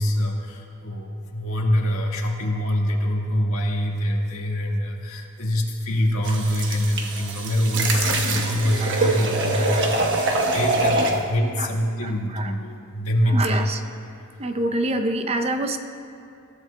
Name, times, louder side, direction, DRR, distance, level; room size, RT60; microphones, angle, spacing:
voice 1, 0.0-10.2 10.5-13.6, equal, 80° left, 0 dB, 1.6 m, -24 dB
sound 1, 6.2-11.2, right 2 dB, 55° right, 1.1 m, -24 dB
voice 2, 8.8-9.8 11.6-11.7 12.0-12.5 13.2-13.8 14.4-15.8, right 2 dB, 30° right, 7 dB, 0.5 m, -27 dB
21.0 x 13.5 x 2.2 m, 2.6 s
head